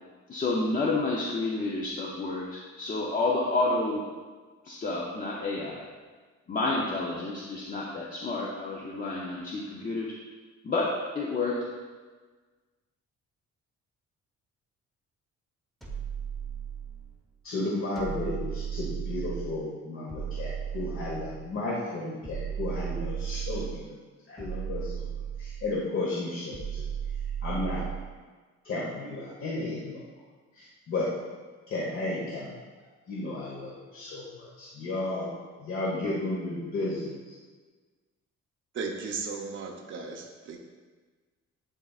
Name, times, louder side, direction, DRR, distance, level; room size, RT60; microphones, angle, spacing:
voice 1, 0.3-4.0 4.6-5.9 6.5-10.1 10.6-10.9 11.1-11.5, left 3 dB, 30° left, -4 dB, 0.7 m, -29 dB
sound 1, 15.8-17.1 18.0-19.6 20.1-21.5 22.2-23.8 24.4-25.8 26.5-28.1, right 8 dB, ahead, 0.9 m, -35 dB
voice 2, 17.4-23.9 24.3-25.1 25.4-26.9 27.4-27.8 28.6-30.0 30.5-31.1 31.7-32.5 33.1-35.3 35.6-37.3, left 2 dB, 45° left, -5 dB, 1.2 m, -33 dB
voice 3, 38.7-40.6, right 4 dB, 45° right, 0 dB, 0.7 m, -36 dB
10.5 x 3.9 x 2.4 m, 1.4 s
cardioid pair, 150°, 29 cm